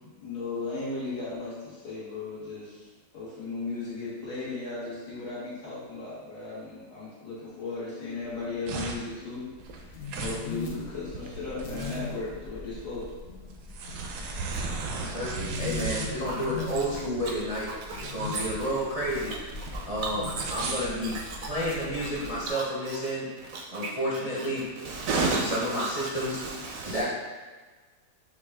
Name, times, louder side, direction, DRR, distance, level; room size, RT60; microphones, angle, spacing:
voice 1, 0.2-2.9 3.1-9.4 9.8-13.1, left 3 dB, 80° left, -8 dB, 2.0 m, -36 dB
sound 1, 8.2-21.8, right 4 dB, 85° right, 1.2 m, -37 dB
sound 2, 9.6-22.5, left 3 dB, 60° left, 0.5 m, -40 dB
voice 2, 14.9-17.7 18.0-19.3 19.9-21.2 21.4-23.3 23.7-24.6 25.5-26.4 26.8-27.2, equal, 40° right, -7 dB, 0.5 m, -30 dB
voice 3, 24.9-27.0, right 3 dB, 70° right, -1 dB, 0.9 m, -31 dB
5.8 x 2.3 x 3.4 m, 1.3 s
omnidirectional pair, 1.7 m